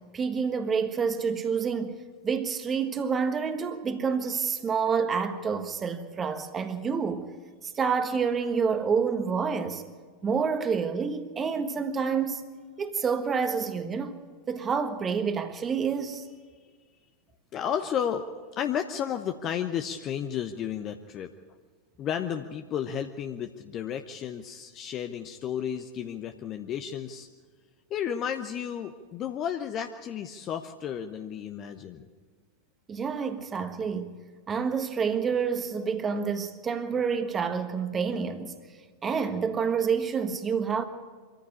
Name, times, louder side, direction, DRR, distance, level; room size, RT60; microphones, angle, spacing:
voice 1, 0.0-7.3 7.6-9.8 10.2-12.4 12.8-14.2 14.5-16.2 32.9-34.2 34.5-38.5 39.0-40.9, right 6 dB, 20° right, 1.5 m, -28 dB
voice 2, 17.5-18.3 18.6-21.3 22.0-27.3 27.9-32.1, left 8 dB, 30° left, 0.9 m, -32 dB
24.5 x 14.0 x 8.6 m
figure-of-eight pair, 90°, 0 cm